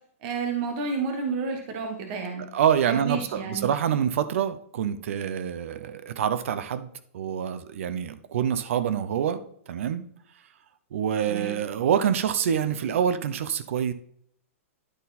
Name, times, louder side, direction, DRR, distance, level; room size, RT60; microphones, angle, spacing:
voice 1, 0.2-2.5 2.9-3.7 11.3-11.5, right 5 dB, 40° right, 3 dB, 1.3 m, -30 dB
voice 2, 2.5-6.9 7.1-9.4 9.7-10.0 10.9-13.9, right 8 dB, 65° right, 13 dB, 0.6 m, -26 dB
11.5 x 4.1 x 4.1 m, 0.67 s
hypercardioid pair, 150°, 8 cm